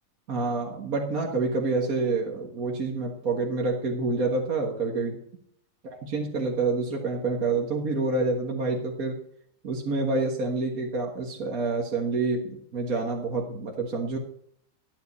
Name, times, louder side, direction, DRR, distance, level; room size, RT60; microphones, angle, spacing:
voice 1, 0.3-5.2 5.8-9.2 9.6-14.2, right 3 dB, 55° right, 0 dB, 2.0 m, -28 dB
13.5 x 10.0 x 4.2 m, 0.67 s
omnidirectional pair, 1.8 m